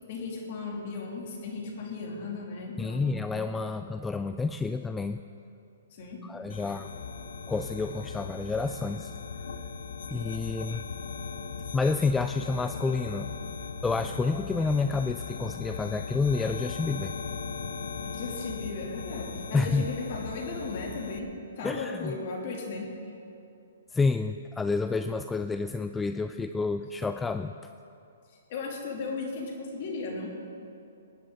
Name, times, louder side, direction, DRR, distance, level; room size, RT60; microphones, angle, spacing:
voice 1, 0.1-3.3 5.9-6.2 18.0-21.3 21.6-22.9 28.5-30.3, left 3 dB, 50° left, -1 dB, 2.9 m, -36 dB
voice 2, 2.8-5.2 6.2-6.9 7.5-9.1 9.4-9.5 10.1-10.8 11.7-13.3 13.8-17.1 19.5-19.9 21.6-22.1 23.9-27.5, left 4 dB, 10° left, 9 dB, 0.3 m, -29 dB
sound 1, 6.5-21.2, left 5 dB, 65° left, 0.9 m, -38 dB
19.5 x 10.5 x 3.9 m, 2.7 s
figure-of-eight pair, 125°, 0 cm